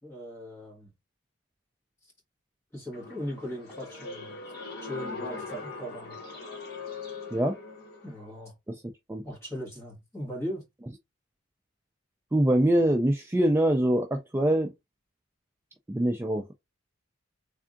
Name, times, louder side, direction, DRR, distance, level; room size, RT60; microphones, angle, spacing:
voice 1, 0.0-0.9 2.7-4.4 4.8-6.2 8.0-8.5 9.2-10.6, equal, 15° left, 1.8 m, -38 dB
sound 1, 2.9-8.2, left 4 dB, 50° left, 1.7 m, -41 dB
voice 2, 12.3-14.7 15.9-16.5, right 1 dB, 10° right, 0.3 m, -24 dB
3.5 x 3.5 x 2.5 m
head